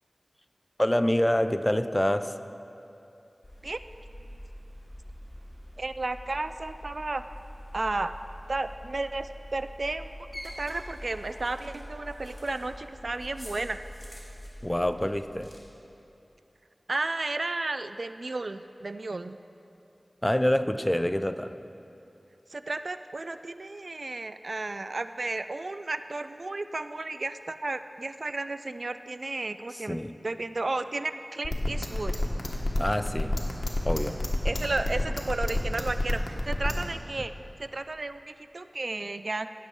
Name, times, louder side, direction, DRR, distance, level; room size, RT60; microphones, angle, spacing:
voice 1, 0.8-2.3 14.6-15.5 20.2-21.5 29.9-30.1 32.8-33.3 33.8-34.2, left 1 dB, 15° left, 10 dB, 0.4 m, -26 dB
sound 1, 3.4-15.6, equal, 30° left, 2.6 m, -44 dB
voice 2, 5.8-7.2 7.7-8.1 8.5-10.1 10.6-13.8 16.9-19.4 22.5-30.0 30.2-32.1 34.4-37.3 37.6-39.5, right 2 dB, 70° right, 11 dB, 0.3 m, -33 dB
sound 2, 31.4-36.8, left 1 dB, 60° left, 1.4 m, -27 dB
16.0 x 7.2 x 4.6 m, 2.8 s
wide cardioid pair, 45°, 0 cm